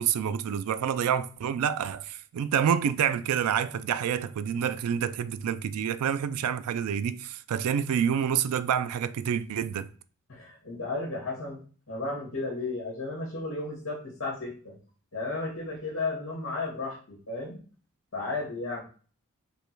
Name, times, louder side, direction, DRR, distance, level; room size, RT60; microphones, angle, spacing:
voice 1, 0.0-9.9, right 8 dB, 85° right, 0.3 m, -28 dB
voice 2, 10.3-11.6 11.9-14.8 15.1-17.6 18.1-18.8, left 3 dB, 65° left, 2.0 m, -34 dB
5.0 x 2.2 x 4.5 m
head